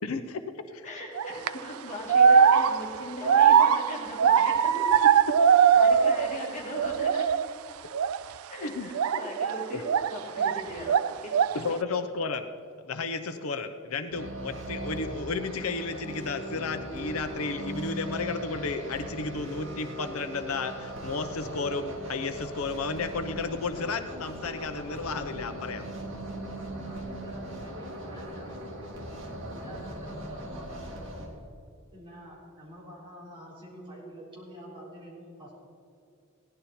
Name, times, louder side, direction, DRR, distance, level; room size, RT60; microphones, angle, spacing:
voice 1, 0.0-0.4 0.7-0.9 8.6-8.9 9.7-9.8 11.5-12.4 12.9-25.9, left 4 dB, 85° left, 9 dB, 0.8 m, -33 dB
voice 2, 0.8-4.9 5.7-7.2 8.5-9.8 10.1-11.4 11.7-12.0, left 1 dB, 35° left, -2 dB, 2.6 m, -38 dB
sound 1, 1.2-1.5 2.1-6.5 6.7-7.5 7.9-8.2 8.9-10.6 10.9-11.7, right 7 dB, 85° right, 0.4 m, -21 dB
sound 2, 14.1-31.3, right 1 dB, 65° right, 2.5 m, -39 dB
voice 3, 26.8-28.5 29.5-31.4 31.9-35.6, equal, 25° right, -5 dB, 4.0 m, -47 dB
16.5 x 11.0 x 4.3 m, 2.4 s
head